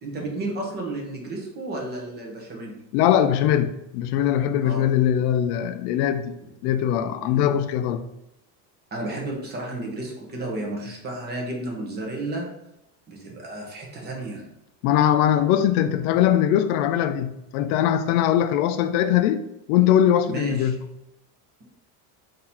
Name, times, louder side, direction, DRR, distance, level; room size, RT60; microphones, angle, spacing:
voice 1, 0.0-2.8 4.6-4.8 7.2-7.4 8.9-12.5 13.1-14.5 20.3-20.7, right 2 dB, 20° right, 0.8 m, -32 dB
voice 2, 2.9-6.3 6.6-8.0 14.8-20.8, left 10 dB, 80° left, 0.5 m, -21 dB
3.8 x 2.8 x 4.3 m
cardioid pair, 160°, 44 cm